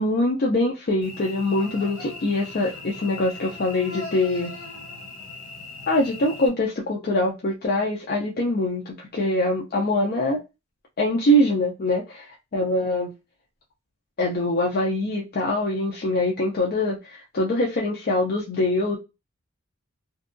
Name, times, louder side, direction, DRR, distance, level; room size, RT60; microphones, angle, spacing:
voice 1, 0.0-4.5 5.9-10.4 11.0-13.1 14.2-19.0, left 1 dB, 45° left, 0.5 m, -23 dB
Cricket / Buzz, 1.0-6.5, left 3 dB, 85° left, 0.9 m, -39 dB
2.6 x 2.2 x 2.5 m
head